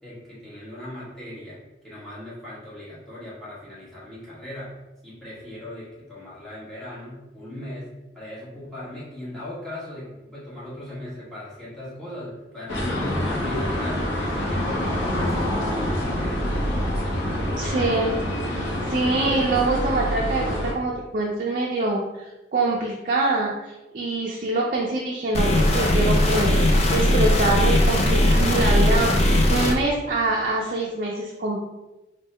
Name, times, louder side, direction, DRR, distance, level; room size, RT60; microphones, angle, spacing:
voice 1, 0.0-4.7 5.0-17.2, left 1 dB, ahead, -10 dB, 1.3 m, -38 dB
sound 1, 12.7-20.7, left 1 dB, 85° left, 0.8 m, -26 dB
voice 2, 17.6-18.2 18.5-31.6, right 2 dB, 45° right, -2 dB, 0.4 m, -25 dB
sound 2, 25.3-29.7, left 1 dB, 35° left, 0.4 m, -19 dB
3.6 x 2.2 x 4.1 m, 1.0 s
head